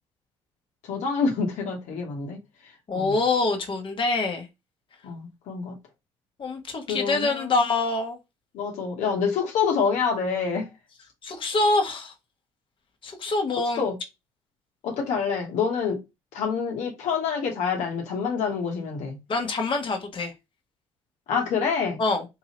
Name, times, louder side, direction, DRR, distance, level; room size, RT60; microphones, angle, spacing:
voice 1, 0.8-2.4 2.9-3.2 5.0-5.7 6.9-7.5 8.5-10.7 13.8-14.0 14.8-16.0 16.3-19.2 21.3-22.0, left 5 dB, 75° left, 1.1 m, -27 dB
voice 2, 2.9-4.5 6.4-8.2 11.2-12.1 13.0-13.9 19.3-20.3 22.0-22.2, left 3 dB, 45° left, 1.1 m, -25 dB
3.8 x 2.8 x 2.9 m
supercardioid pair, 60°, 12 cm